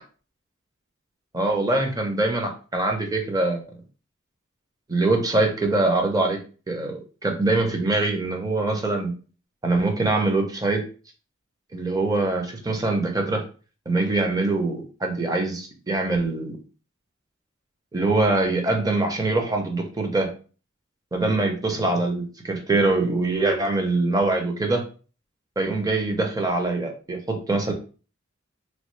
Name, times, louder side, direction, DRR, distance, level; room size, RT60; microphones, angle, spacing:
voice 1, 1.3-3.6 4.9-6.4 6.7-9.1 9.6-10.8 11.7-13.4 13.9-16.6 17.9-20.3 21.1-24.8 25.6-27.7, right 2 dB, 20° right, 2 dB, 0.6 m, -23 dB
3.1 x 2.3 x 3.1 m, 0.37 s
head